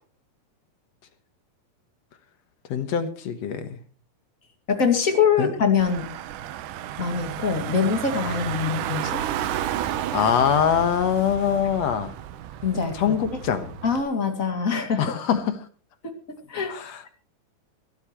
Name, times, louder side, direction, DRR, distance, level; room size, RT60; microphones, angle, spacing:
voice 1, 2.7-3.8 5.4-5.5 10.1-12.1 12.9-13.7 15.0-15.6 16.7-17.1, left 8 dB, 60° left, 10 dB, 2.2 m, -23 dB
voice 2, 4.7-6.0 7.0-9.2 12.6-13.2 13.8-15.1 16.5-16.7, left 6 dB, 25° left, 5 dB, 2.3 m, -23 dB
Car / Engine, 5.8-14.0, right 11 dB, 75° right, 2.4 m, -32 dB
23.0 x 12.5 x 3.0 m, 0.37 s
omnidirectional pair, 3.9 m